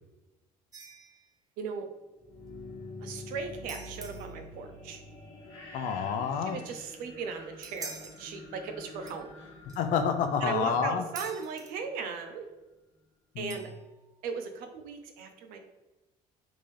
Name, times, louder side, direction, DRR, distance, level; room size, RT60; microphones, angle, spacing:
sound 1, 0.7-1.3 3.7-4.4 7.3-8.2 9.0-9.2 9.7-10.0 11.2-11.8 13.5-14.0, right 4 dB, 25° right, 0.4 m, -45 dB
voice 1, 1.6-1.9 3.0-5.0 6.5-9.3 10.4-12.5 13.4-13.7 14.2-15.6, right 5 dB, 85° right, 6 dB, 0.5 m, -37 dB
sound 2, 2.1-12.0, left 2 dB, 45° left, 1.3 m, -47 dB
voice 2, 5.7-6.6 9.8-11.0 13.3-13.6, left 6 dB, 65° left, 8 dB, 0.4 m, -28 dB
3.6 x 2.6 x 3.2 m, 1.1 s
cardioid pair, 130°, 14 cm